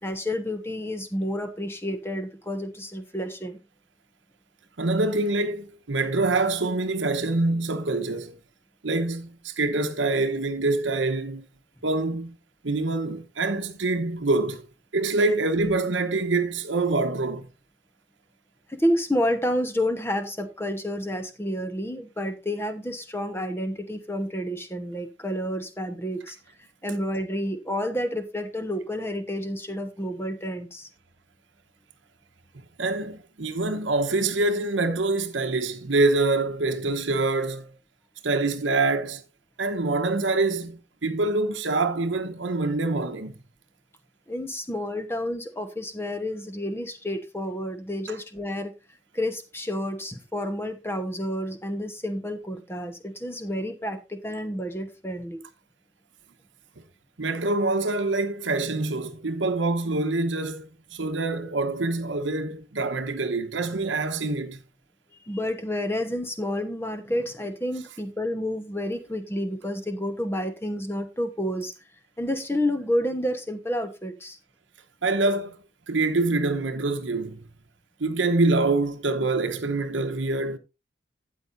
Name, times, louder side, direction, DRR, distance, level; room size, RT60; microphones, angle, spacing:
voice 1, 0.0-3.6 18.7-26.4 26.8-30.9 44.3-48.7 49.1-55.4 65.2-71.7 72.2-74.4, left 1 dB, 10° left, 1.1 m, -30 dB
voice 2, 4.8-8.4 8.8-11.5 11.8-12.4 12.6-14.6 14.9-17.5 32.8-37.7 38.2-39.2 39.6-43.4 57.2-64.6 75.0-75.6 75.9-77.4 78.0-80.6, right 2 dB, 80° right, 1.0 m, -25 dB
12.5 x 9.2 x 2.6 m
head